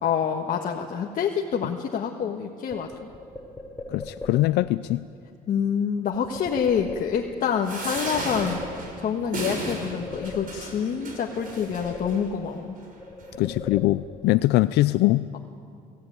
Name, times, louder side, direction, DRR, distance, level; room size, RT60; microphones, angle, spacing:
voice 1, 0.0-3.1 5.5-12.7, left 7 dB, 55° left, 1 dB, 1.5 m, -27 dB
sound 1, 2.7-4.7 6.1-7.5 7.8-9.2 9.6-10.9 11.3-12.6 13.0-14.4, left 2 dB, 10° left, 3.4 m, -40 dB
voice 2, 3.9-5.0 13.4-15.3, left 17 dB, 80° left, 13 dB, 0.5 m, -22 dB
sound 2, 7.6-12.2 12.8-12.9 13.2-13.3, right 1 dB, 55° right, 6.4 m, -34 dB
23.5 x 16.0 x 9.3 m, 2.3 s
cardioid pair, 110°, 17 cm